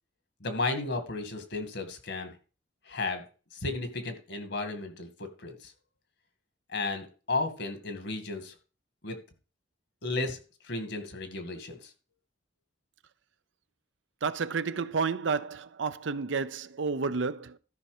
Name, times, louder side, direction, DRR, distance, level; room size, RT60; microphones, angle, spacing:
voice 1, 0.4-2.4 2.9-5.7 6.7-8.6 9.0-9.2 10.0-10.4 10.6-11.9, left 3 dB, 65° left, 2.0 m, -34 dB
voice 2, 14.2-17.6, right 4 dB, 75° right, 0.6 m, -31 dB
13.0 x 5.7 x 5.0 m
head